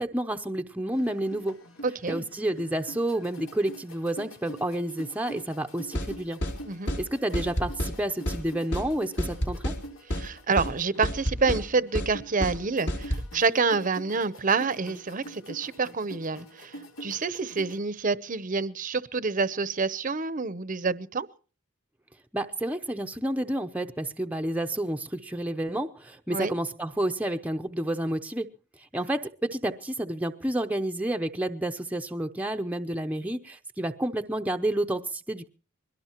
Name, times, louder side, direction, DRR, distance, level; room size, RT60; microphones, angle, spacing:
voice 1, 0.0-1.6 2.1-6.4 7.0-9.7 22.3-28.5 28.9-35.5, right 1 dB, 5° right, 0.7 m, -30 dB
sound 1, 0.9-17.8, right 1 dB, 85° left, 3.6 m, -45 dB
voice 2, 1.8-2.2 6.6-6.9 10.1-21.3 26.3-26.5, right 4 dB, 40° right, 0.8 m, -28 dB
sound 2, 5.9-6.1 6.4-6.6 6.9-7.0 7.3-8.0 8.3-8.4 8.7-8.9 9.2-9.8 10.1-10.3 10.6-10.7 11.0-11.6 11.9-12.1 12.4-12.6 12.9-13.3, equal, 60° left, 3.4 m, -29 dB
22.0 x 17.5 x 3.0 m
head